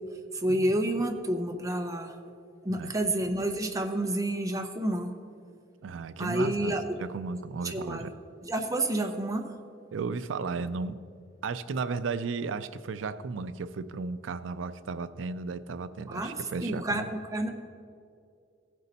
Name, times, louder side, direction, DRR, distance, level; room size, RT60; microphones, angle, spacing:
voice 1, 0.3-2.1 2.6-5.1 6.2-7.0 7.6-8.1 8.4-9.5 16.1-16.3 16.6-17.5, right 1 dB, 20° right, 4 dB, 0.8 m, -29 dB
voice 2, 5.8-8.1 9.9-11.0 11.4-17.1, right 4 dB, 90° right, 13 dB, 0.4 m, -35 dB
16.0 x 5.4 x 4.1 m, 2.4 s
head